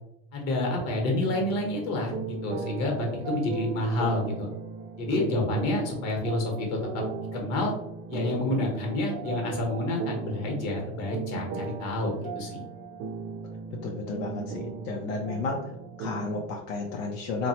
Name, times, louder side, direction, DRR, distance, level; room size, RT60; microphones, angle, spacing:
voice 1, 0.3-4.5 5.0-7.0 7.3-7.7 8.1-12.6, left 1 dB, 55° left, 1 dB, 1.0 m, -28 dB
sound 1, 1.2-16.4, right 5 dB, 70° right, 0.5 m, -38 dB
voice 2, 13.8-15.7 16.0-17.5, left 3 dB, 85° left, 0 dB, 0.6 m, -32 dB
2.9 x 2.2 x 2.8 m, 0.82 s
cardioid pair, 135°, 31 cm